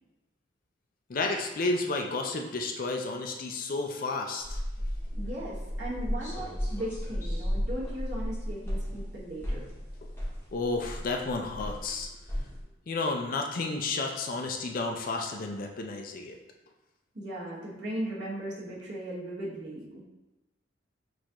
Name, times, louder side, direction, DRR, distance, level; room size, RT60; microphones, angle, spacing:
voice 1, 1.1-4.6 10.5-12.1 12.9-16.4, left 3 dB, 45° left, 3 dB, 0.4 m, -31 dB
sound 1, 4.4-12.6, equal, 10° left, 0.8 m, -34 dB
voice 2, 5.2-9.7 17.1-20.0, right 1 dB, 60° right, -7 dB, 1.5 m, -37 dB
6.2 x 2.5 x 2.9 m, 1.0 s
head